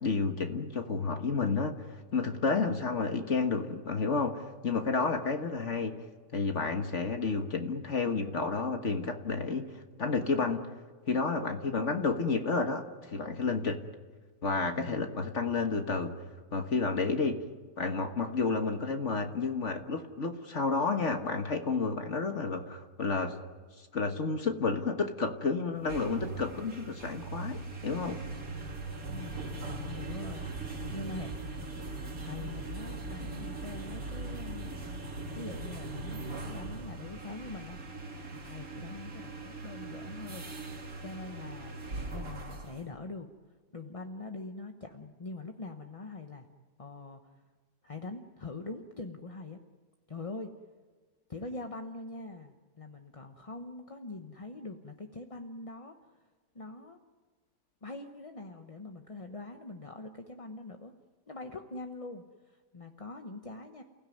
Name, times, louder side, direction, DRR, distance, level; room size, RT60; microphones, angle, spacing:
voice 1, 0.0-5.9 6.3-9.7 10.0-10.6 11.1-13.8 14.4-16.1 16.5-17.4 17.8-23.3 23.8-28.2, left 4 dB, 45° left, 6 dB, 1.6 m, -31 dB
voice 2, 14.8-15.2 29.1-29.5 29.8-31.6 32.2-34.7 35.3-38.0 38.3-40.7 41.0-41.8 42.1-43.3 43.7-46.5 46.8-47.2 47.8-49.6 50.1-50.5 51.3-56.2 56.5-57.0 57.8-60.9 61.3-63.8, left 2 dB, 25° left, 5 dB, 0.9 m, -43 dB
sound 1, 25.7-42.9, right 2 dB, 55° right, 2.7 m, -40 dB
29.0 x 16.5 x 9.4 m, 1.5 s
omnidirectional pair, 1.8 m